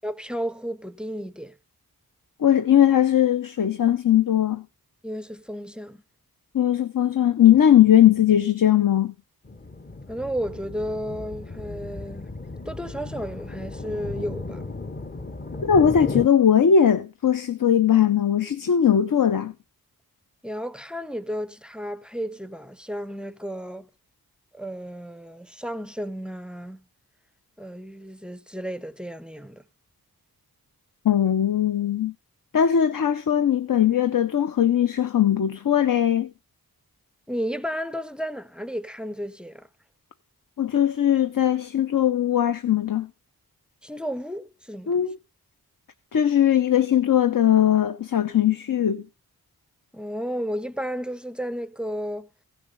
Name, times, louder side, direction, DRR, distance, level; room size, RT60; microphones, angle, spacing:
voice 1, 0.0-1.5 5.0-6.0 10.1-12.3 12.7-14.6 20.4-23.9 24.5-26.8 27.6-29.6 37.3-39.7 43.8-44.9 49.9-52.3, equal, 5° right, 0.5 m, -33 dB
voice 2, 2.4-4.6 6.5-9.1 15.6-19.5 31.0-32.1 32.5-36.3 40.6-43.1 44.9-45.2 46.1-49.0, left 9 dB, 60° left, 0.7 m, -19 dB
sound 1, 9.4-16.3, left 3 dB, 25° left, 0.7 m, -35 dB
15.5 x 6.6 x 3.9 m
wide cardioid pair, 75°, 37 cm